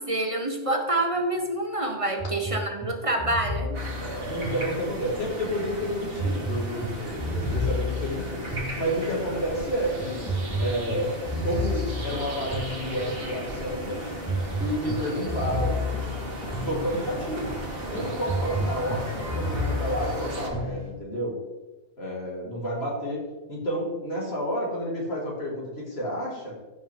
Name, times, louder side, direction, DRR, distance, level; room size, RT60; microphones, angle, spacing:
voice 1, 0.0-3.8, right 1 dB, 30° right, 3 dB, 1.0 m, -27 dB
sound 1, 2.2-5.3 6.2-20.9, left 1 dB, 20° left, 2.9 m, -32 dB
sound 2, 3.7-20.5, right 1 dB, 50° right, 2.0 m, -36 dB
voice 2, 4.3-8.5 8.8-10.2 10.6-11.1 11.4-14.0 14.6-15.8 16.5-17.6 17.9-21.4 22.0-23.2 23.5-26.5, equal, 55° left, -3 dB, 2.6 m, -30 dB
15.0 x 5.4 x 3.7 m, 1.1 s
omnidirectional pair, 1.3 m